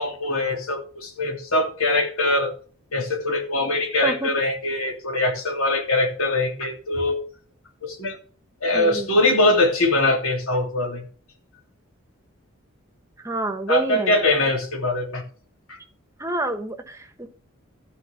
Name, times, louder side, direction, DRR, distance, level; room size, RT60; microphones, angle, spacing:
voice 1, 0.0-2.5 2.9-7.2 7.8-8.1 8.6-11.0 13.7-15.2 15.7-15.8, left 2 dB, 75° left, 3.2 m, -22 dB
voice 2, 8.7-9.2 13.2-14.2 16.2-17.3, right 1 dB, 15° right, 1.2 m, -27 dB
13.0 x 4.8 x 7.3 m
head